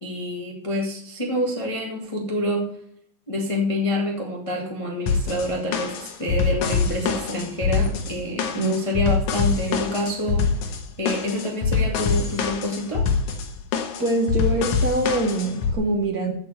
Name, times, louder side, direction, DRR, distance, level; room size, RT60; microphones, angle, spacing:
voice 1, 0.0-2.7 3.3-10.4 11.0-13.1, left 1 dB, 15° left, -1 dB, 1.2 m, -27 dB
sound 1, 5.1-15.7, left 5 dB, 65° left, 2.3 m, -25 dB
voice 2, 14.0-16.3, right 1 dB, 65° right, 2 dB, 0.9 m, -24 dB
14.5 x 5.0 x 6.7 m, 0.70 s
omnidirectional pair, 4.2 m